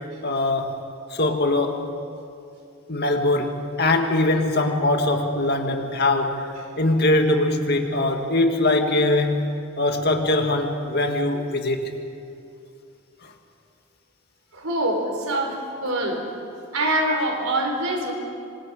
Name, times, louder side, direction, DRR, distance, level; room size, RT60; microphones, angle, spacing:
voice 1, 0.2-0.8 1.1-1.8 2.9-6.5 6.8-9.5 9.8-11.9, left 2 dB, 50° left, 4 dB, 1.9 m, -22 dB
voice 2, 14.5-16.2 16.7-18.1, right 1 dB, 85° right, 2 dB, 4.4 m, -24 dB
27.0 x 25.5 x 5.1 m, 2.5 s
head